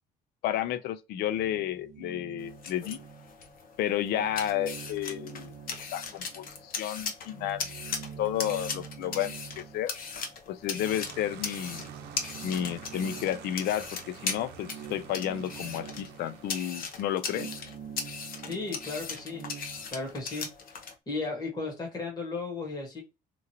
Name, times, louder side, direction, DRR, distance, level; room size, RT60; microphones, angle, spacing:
voice 1, 0.4-3.0 3.8-5.5 5.9-7.7 8.2-9.9 10.5-11.9 12.4-17.5, left 11 dB, 70° left, 0.4 m, -32 dB
sound 1, 1.3-3.6 3.9-6.7 7.0-19.9, right 8 dB, 45° right, 0.4 m, -46 dB
sound 2, 2.4-20.9, left 5 dB, 55° left, 0.9 m, -39 dB
sound 3, 10.8-17.7, right 7 dB, 85° right, 0.6 m, -49 dB
voice 2, 18.5-19.5 19.9-20.5 21.1-23.0, left 3 dB, 25° left, 1.3 m, -35 dB
3.0 x 2.5 x 2.7 m
cardioid pair, 110°, 17 cm